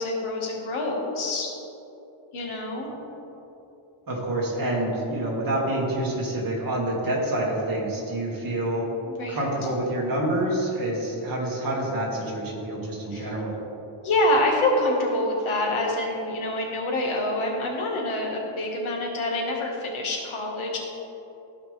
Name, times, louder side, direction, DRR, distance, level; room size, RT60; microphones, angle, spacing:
voice 1, 0.0-1.5 2.3-2.9 9.1-9.4 13.1-13.3 14.0-20.8, left 1 dB, 70° left, -1 dB, 1.8 m, -26 dB
voice 2, 4.1-8.9 9.3-13.6, right 1 dB, 40° right, -4 dB, 2.1 m, -27 dB
15.0 x 5.2 x 3.4 m, 3.0 s
wide cardioid pair, 145°, 50 cm